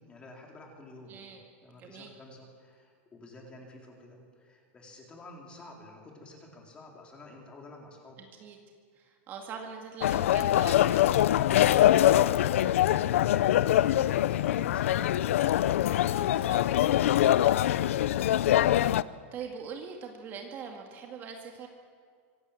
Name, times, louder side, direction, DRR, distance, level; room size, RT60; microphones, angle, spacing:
voice 1, 0.0-8.2 12.3-16.6, left 2 dB, 15° left, 0 dB, 4.1 m, -50 dB
voice 2, 1.1-1.4 1.8-2.1 8.4-8.6 8.9-11.2 16.2-17.5 17.8-18.2 18.8-21.7, right 6 dB, 30° right, 2 dB, 2.2 m, -43 dB
sound 1, 10.0-19.0, left 12 dB, 90° left, 0.6 m, -23 dB
25.5 x 18.0 x 8.6 m, 2.1 s
supercardioid pair, 160°, 7 cm